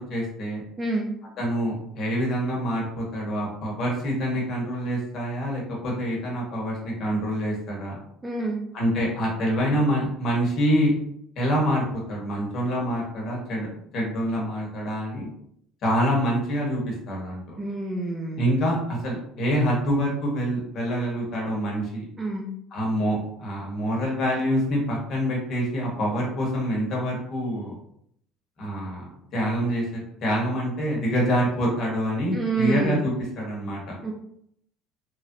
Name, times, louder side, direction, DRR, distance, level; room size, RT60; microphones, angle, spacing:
voice 1, 0.1-0.6 1.4-7.9 8.7-10.9 11.4-13.7 13.9-15.3 15.8-17.6 18.4-22.0 22.7-27.7 28.6-29.0 29.3-33.8, equal, 40° left, -3 dB, 1.1 m, -26 dB
voice 2, 0.8-1.1 8.2-8.6 17.6-18.4 22.2-22.5 32.3-33.0 34.0-34.1, right 3 dB, 15° right, 0 dB, 0.3 m, -27 dB
3.1 x 2.4 x 2.7 m, 0.69 s
cardioid pair, 165°, 0 cm